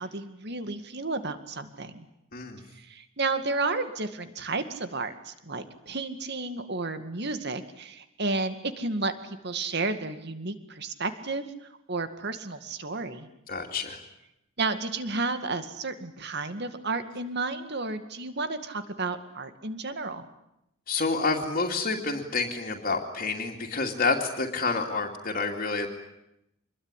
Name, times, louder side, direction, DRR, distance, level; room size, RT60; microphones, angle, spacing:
voice 1, 0.0-2.1 2.8-11.4 11.9-13.3 14.6-20.3, right 3 dB, 55° right, 9 dB, 2.1 m, -32 dB
voice 2, 2.3-2.6 13.5-14.0 20.9-25.9, left 3 dB, 45° left, 0 dB, 2.6 m, -28 dB
26.0 x 21.5 x 9.9 m, 0.84 s
head